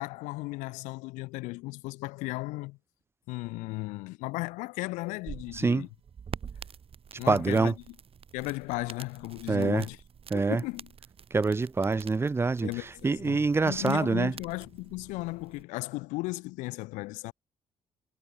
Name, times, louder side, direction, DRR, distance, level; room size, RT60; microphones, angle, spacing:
voice 1, 0.0-2.8 3.3-5.9 7.2-7.9 8.3-10.0 10.3-10.9 12.6-17.3, left 22 dB, 80° left, 0.9 m, -36 dB
sound 1, 5.0-15.6, right 7 dB, 50° right, 2.1 m, -47 dB
voice 2, 5.6-5.9 7.3-7.7 9.5-9.8 10.3-10.6 11.3-12.7 13.0-14.3, right 4 dB, 20° right, 0.4 m, -25 dB
hypercardioid pair, 50°, 13 cm